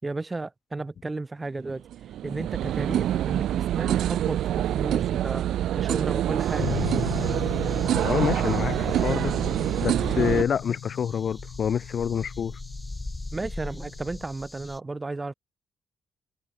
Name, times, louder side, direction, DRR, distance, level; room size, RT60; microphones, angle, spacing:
voice 1, 0.0-1.9 2.2-5.5 5.7-6.8 13.3-15.3, right 3 dB, 15° right, 5.6 m, -33 dB
sound 1, 1.7-10.4, right 12 dB, 85° right, 5.1 m, -26 dB
sound 2, 6.4-14.8, left 2 dB, 10° left, 3.5 m, -41 dB
sound 3, 6.6-14.2, left 11 dB, 80° left, 7.7 m, -37 dB
voice 2, 7.9-9.4 9.8-12.6, left 8 dB, 45° left, 6.0 m, -27 dB
wide cardioid pair, 175°, 0 cm